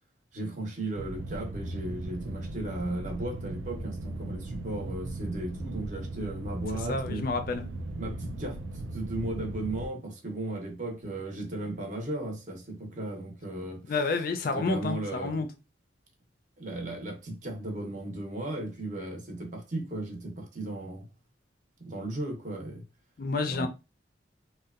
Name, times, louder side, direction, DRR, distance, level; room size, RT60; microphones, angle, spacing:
voice 1, 0.3-7.2 8.0-13.9 14.5-15.4 16.6-21.1 21.8-22.8 23.5-23.7, right 2 dB, 40° right, 0.7 m, -36 dB
sound 1, 1.0-9.9, right 2 dB, 90° right, 0.4 m, -38 dB
voice 2, 6.9-7.6 13.9-15.5 23.2-23.7, left 3 dB, 50° left, 0.3 m, -29 dB
2.7 x 2.1 x 2.3 m
head